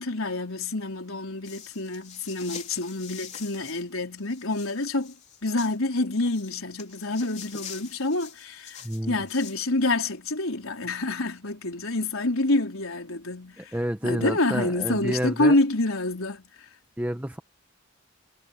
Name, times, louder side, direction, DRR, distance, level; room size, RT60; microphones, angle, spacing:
voice 1, 0.0-5.1 5.4-13.8 14.0-16.5, left 2 dB, 85° left, 4.2 m, -27 dB
sound 1, 1.4-3.8 4.2-5.8 6.2-9.7, left 8 dB, 35° left, 3.7 m, -44 dB
voice 2, 8.8-9.2 13.6-15.6 17.0-17.4, equal, 10° right, 1.1 m, -29 dB
head